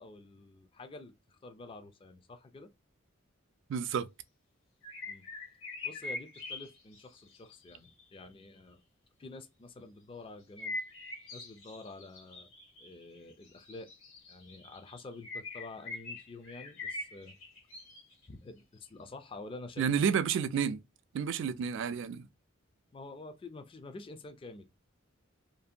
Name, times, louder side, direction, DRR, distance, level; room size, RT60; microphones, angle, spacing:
voice 1, 0.0-2.7 5.1-5.2 5.8-8.8 9.2-10.7 11.3-12.5 12.8-13.9 14.3-17.4 18.3-20.0 22.9-24.7, left 3 dB, 25° left, 0.3 m, -48 dB
voice 2, 3.7-4.1 19.8-20.8 21.1-22.3, right 7 dB, 65° right, 0.3 m, -30 dB
sound 1, 4.8-8.3 10.6-18.3 18.8-18.9, left 2 dB, 75° left, 1.3 m, -43 dB
2.6 x 2.1 x 2.4 m
head